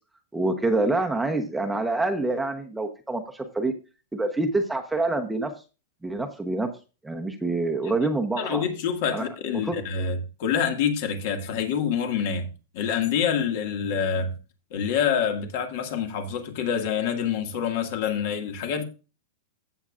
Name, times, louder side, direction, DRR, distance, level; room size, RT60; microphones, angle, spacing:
voice 1, 0.3-3.7 4.1-5.5 6.0-6.7 7.0-8.6 9.1-9.3 9.6-9.8, right 2 dB, 5° right, 0.9 m, -26 dB
voice 2, 8.4-12.5 12.7-14.3 14.7-18.8, left 7 dB, 55° left, 2.0 m, -26 dB
15.5 x 7.2 x 2.5 m
supercardioid pair, 150°, 0 cm